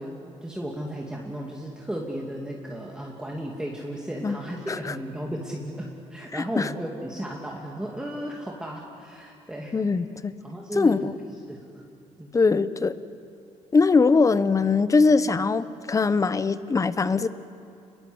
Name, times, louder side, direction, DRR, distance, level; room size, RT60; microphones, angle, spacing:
voice 1, 0.0-9.8 10.4-11.0 11.5-11.6 12.2-12.3, right 1 dB, 5° right, -2 dB, 2.5 m, -34 dB
voice 2, 6.3-6.7 9.7-10.3 10.7-11.1 12.3-12.9 13.7-17.3, left 4 dB, 25° left, 14 dB, 0.9 m, -21 dB
29.0 x 22.0 x 7.9 m, 2.7 s
cardioid pair, 110°, 12 cm